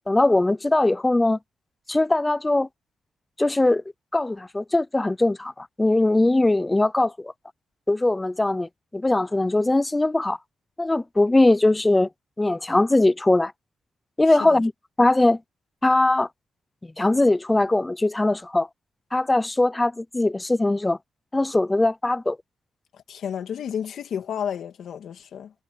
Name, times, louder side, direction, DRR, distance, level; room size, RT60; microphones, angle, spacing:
voice 1, 0.1-1.4 1.9-2.7 3.4-3.8 4.1-7.3 7.9-10.4 10.8-12.1 12.4-13.5 14.2-14.7 15.0-15.4 15.8-16.3 17.0-18.7 19.1-21.0 21.3-22.4, left 2 dB, 15° left, 0.6 m, -21 dB
voice 2, 14.3-14.6 22.9-25.5, left 8 dB, 75° left, 2.4 m, -32 dB
wide cardioid pair, 140°, 0 cm